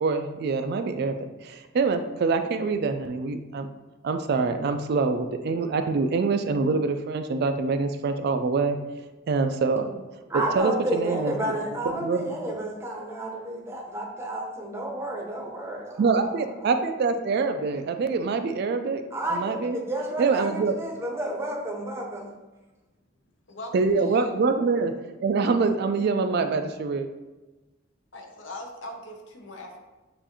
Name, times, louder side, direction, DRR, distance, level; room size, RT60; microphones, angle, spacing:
voice 1, 0.0-3.7 4.0-8.8 9.3-10.0 10.6-11.5 11.8-12.3 16.0-19.0 19.3-19.8 20.2-20.7 23.7-24.9 25.2-27.1, right 4 dB, 55° right, 7 dB, 0.3 m, -25 dB
voice 2, 10.3-16.4 19.1-22.3, right 1 dB, 15° right, -1 dB, 0.7 m, -31 dB
voice 3, 23.5-24.4 28.1-29.8, left 1 dB, 70° left, 3 dB, 0.7 m, -40 dB
6.8 x 2.5 x 2.9 m, 1.1 s
head